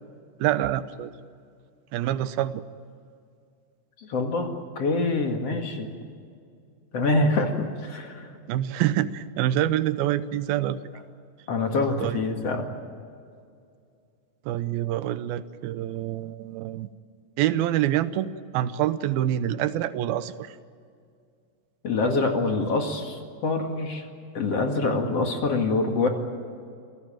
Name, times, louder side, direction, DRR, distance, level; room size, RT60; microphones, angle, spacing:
voice 1, 0.4-1.1 1.9-2.6 8.5-10.8 12.0-12.2 14.5-16.9 17.4-20.6, right 12 dB, 85° right, 13 dB, 2.7 m, -26 dB
voice 2, 4.0-5.9 6.9-8.3 11.5-12.6 21.8-24.0 24.3-26.1, left 3 dB, 45° left, 3 dB, 2.8 m, -25 dB
27.5 x 17.5 x 9.1 m, 2.3 s
omnidirectional pair, 4.2 m